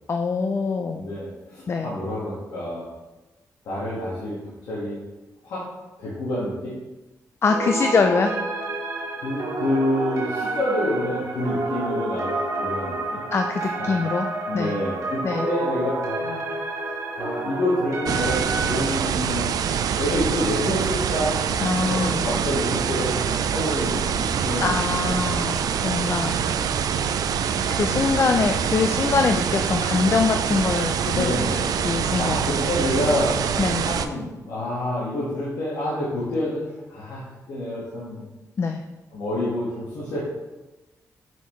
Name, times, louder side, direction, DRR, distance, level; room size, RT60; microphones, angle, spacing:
voice 1, 0.1-1.1 1.7-1.9 7.4-8.3 13.3-14.3 14.5-14.7 15.2-15.5 21.6-22.2 24.6-26.3 27.7-31.4 31.8-32.5 33.6-33.9 38.6-38.8, left 4 dB, 45° left, 5 dB, 0.4 m, -23 dB
voice 2, 0.9-2.9 3.6-4.4 4.7-5.0 5.4-5.6 6.0-6.7 9.2-12.3 12.6-13.2 13.8-13.9 14.5-16.5 17.2-19.5 20.0-21.4 21.8-23.2 23.5-25.5 27.0-27.3 31.1-31.7 32.2-33.4 33.8-36.6 36.9-38.3 39.1-40.2, left 1 dB, 85° left, -8 dB, 1.6 m, -28 dB
sound 1, 7.5-18.8, right 2 dB, 60° right, 1.1 m, -29 dB
sound 2, 18.1-34.1, right 7 dB, 80° right, 0.4 m, -25 dB
6.1 x 5.5 x 3.1 m, 1.1 s
cardioid pair, 85°, 6 cm